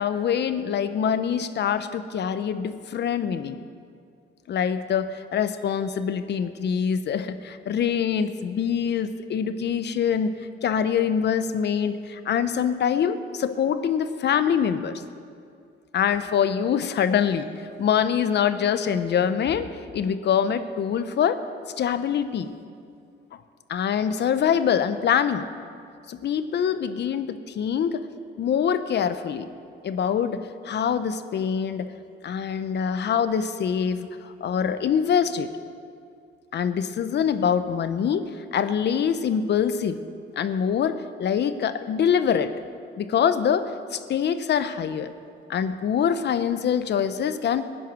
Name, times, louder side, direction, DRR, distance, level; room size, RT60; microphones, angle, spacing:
voice 1, 0.0-3.6 4.5-10.3 10.6-15.0 15.9-17.5 17.8-19.7 19.9-21.4 21.8-22.5 23.7-25.5 26.1-28.0 28.4-29.5 29.8-31.9 32.2-35.5 36.5-40.0 40.4-42.5 43.0-45.1 45.5-47.6, left 8 dB, 60° left, 11 dB, 0.8 m, -24 dB
15.5 x 10.0 x 6.2 m, 2.3 s
cardioid pair, 90°, 20 cm